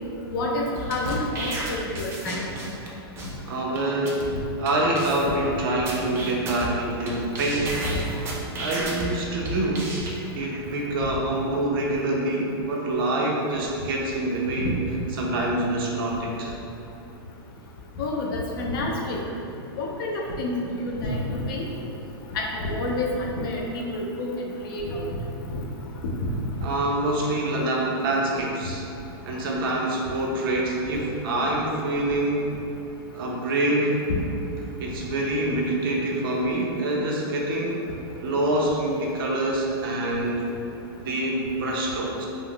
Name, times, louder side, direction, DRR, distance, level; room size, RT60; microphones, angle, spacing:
voice 1, 0.3-2.4 7.8-8.0 14.6-14.7 18.0-19.2 19.8-21.7 22.3-24.3 24.6-25.2 26.2-26.3 34.1-34.2, left 2 dB, 60° left, -1 dB, 0.5 m, -28 dB
sound 1, 0.8-2.9 3.2-3.3 3.8-3.9 4.1-4.3 4.7-4.8 4.9-5.5 5.9-7.1 7.3-9.1 9.4-10.1, right 2 dB, 20° right, 0.3 m, -32 dB
voice 2, 3.5-4.3 4.6-7.9 8.6-9.9 10.3-14.7 15.2-16.5 26.6-28.9 29.3-32.4 33.1-34.0 34.8-37.8 38.2-40.4 41.0-42.3, right 1 dB, 65° right, -2 dB, 0.6 m, -26 dB
2.4 x 2.1 x 3.7 m, 2.7 s
supercardioid pair, 150°, 13 cm